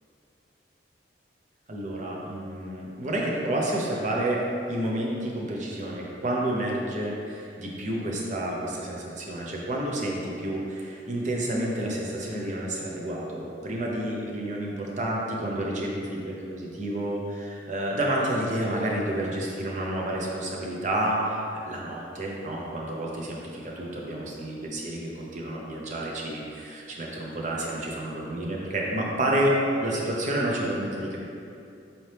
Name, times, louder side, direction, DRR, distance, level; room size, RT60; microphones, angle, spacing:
voice 1, 1.7-4.4 4.7-21.2 21.6-31.2, right 1 dB, 45° right, -2 dB, 0.6 m, -29 dB
4.2 x 2.8 x 3.3 m, 2.6 s
head